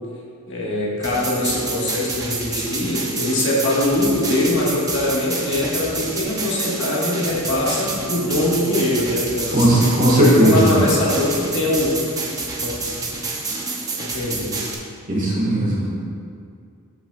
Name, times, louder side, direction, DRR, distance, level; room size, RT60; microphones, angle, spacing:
voice 1, 0.5-12.0 12.6-12.8 14.0-14.6, left 1 dB, 55° left, -5 dB, 1.5 m, -22 dB
sound 1, 1.0-14.7, right 3 dB, 15° right, 0.8 m, -28 dB
voice 2, 9.5-10.7 15.1-15.9, right 1 dB, 35° right, -4 dB, 1.6 m, -16 dB
13.0 x 5.8 x 2.3 m, 2.3 s
head